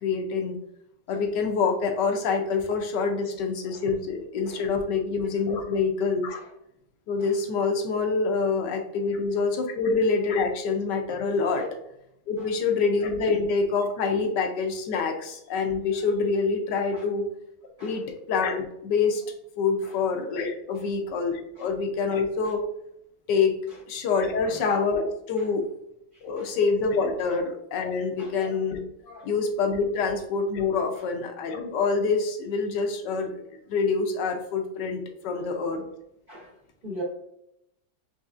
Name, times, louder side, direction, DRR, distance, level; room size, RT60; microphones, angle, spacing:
voice 1, 0.0-0.6 1.1-6.4 7.1-11.7 12.3-17.3 17.8-19.3 19.6-22.6 23.3-23.6 23.9-25.7 26.2-33.4 33.7-35.9, left 4 dB, 75° left, 4 dB, 1.2 m, -26 dB
voice 2, 26.1-26.5 28.2-28.3 29.1-29.3 35.3-35.5 36.3-36.6 36.8-37.0, equal, 45° right, -5 dB, 0.7 m, -43 dB
5.5 x 3.2 x 2.4 m, 0.79 s
omnidirectional pair, 2.0 m